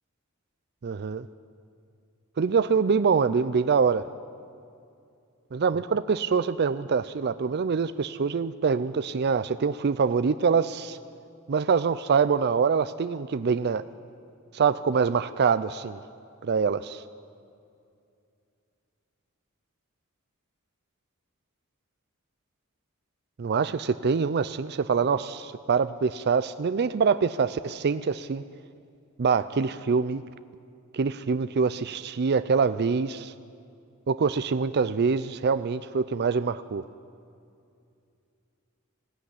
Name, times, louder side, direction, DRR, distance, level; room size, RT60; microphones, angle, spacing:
voice 1, 0.8-1.3 2.4-4.1 5.5-11.0 11.5-13.8 14.5-16.0 16.4-17.0 23.4-28.4 29.2-30.2 30.9-33.3 34.1-36.8, right 5 dB, 50° right, 13 dB, 0.4 m, -25 dB
20.5 x 15.0 x 10.0 m, 2.5 s
head